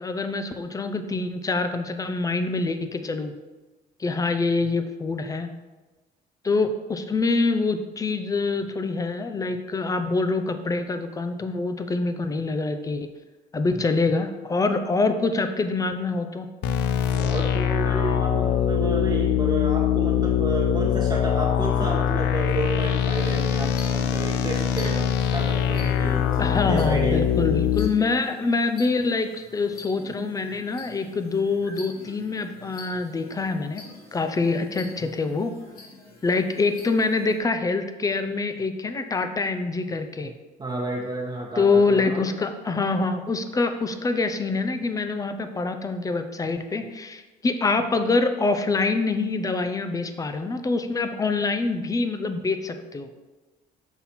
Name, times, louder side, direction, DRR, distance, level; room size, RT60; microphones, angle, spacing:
voice 1, 0.0-3.3 4.0-5.5 6.4-13.1 13.5-16.5 26.4-33.8 34.1-35.5 36.2-40.3 41.6-53.1, left 3 dB, 20° left, 8 dB, 0.5 m, -25 dB
sound 1, 16.6-27.9, left 9 dB, 85° left, 0.5 m, -23 dB
voice 2, 17.1-27.2 40.6-42.2, right 3 dB, 25° right, -3 dB, 1.0 m, -31 dB
sound 2, 23.1-37.4, left 2 dB, 60° left, 1.7 m, -46 dB
6.0 x 4.0 x 4.2 m, 1.2 s
cardioid pair, 110°, 17 cm